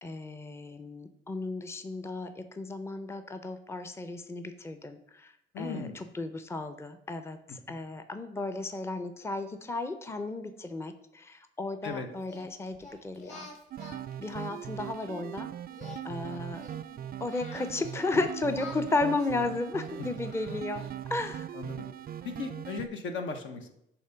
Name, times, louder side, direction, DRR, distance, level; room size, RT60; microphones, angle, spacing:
voice 1, 0.0-13.5 14.2-15.5 16.0-16.6 17.2-20.8 21.1-21.5, left 2 dB, 15° left, 9 dB, 0.5 m, -34 dB
voice 2, 5.5-6.0 11.8-12.1 21.5-21.9 22.2-23.7, left 4 dB, 70° left, 6 dB, 1.0 m, -36 dB
Singing, 12.2-15.3 15.7-18.2 18.5-21.1, left 3 dB, 35° left, 1.6 m, -49 dB
sound 1, 13.7-22.9, right 10 dB, 50° right, 0.4 m, -40 dB
7.1 x 3.0 x 5.6 m, 0.76 s
cardioid pair, 90°, 20 cm